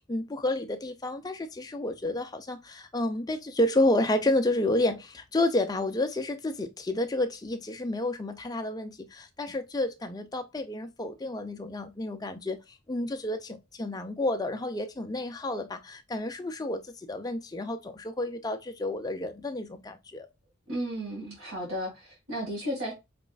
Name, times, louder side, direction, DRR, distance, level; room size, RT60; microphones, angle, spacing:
voice 1, 0.1-12.6 12.9-20.3, left 1 dB, 20° left, 0.5 m, -30 dB
voice 2, 20.7-22.9, equal, 85° right, 1.9 m, -34 dB
5.0 x 3.1 x 2.3 m
head